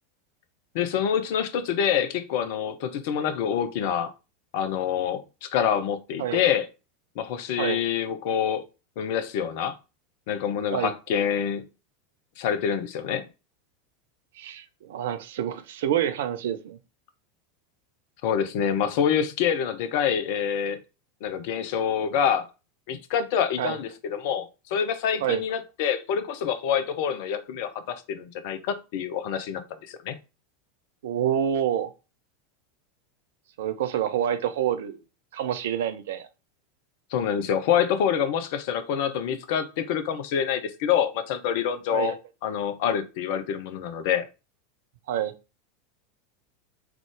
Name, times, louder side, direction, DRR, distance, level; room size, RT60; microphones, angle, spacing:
voice 1, 0.7-4.1 4.5-6.7 7.2-8.6 9.0-9.7 10.3-11.6 12.4-13.2 18.2-20.8 21.2-22.5 22.9-29.6 29.9-30.1 37.1-42.1 42.4-44.3, left 8 dB, 55° left, 0.6 m, -26 dB
voice 2, 14.4-16.8 23.6-23.8 25.2-25.4 31.0-31.9 33.6-35.0 35.3-36.3 41.9-42.1 45.1-45.3, right 10 dB, 60° right, 0.5 m, -27 dB
3.7 x 3.6 x 3.4 m
figure-of-eight pair, 85°, 0 cm